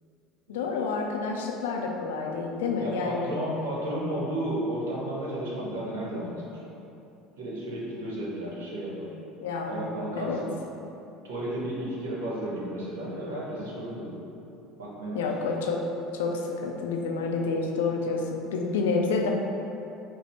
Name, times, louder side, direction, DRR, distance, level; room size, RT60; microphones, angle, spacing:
voice 1, 0.5-3.3 9.4-9.9 10.2-10.4 15.1-15.8 16.1-19.3, left 4 dB, 75° left, 1 dB, 0.4 m, -29 dB
voice 2, 2.8-6.6 7.4-9.1 9.6-10.6 11.2-14.2 14.8-15.3, right 1 dB, 75° right, -5 dB, 1.0 m, -33 dB
5.1 x 2.1 x 4.3 m, 2.9 s
figure-of-eight pair, 70°, 0 cm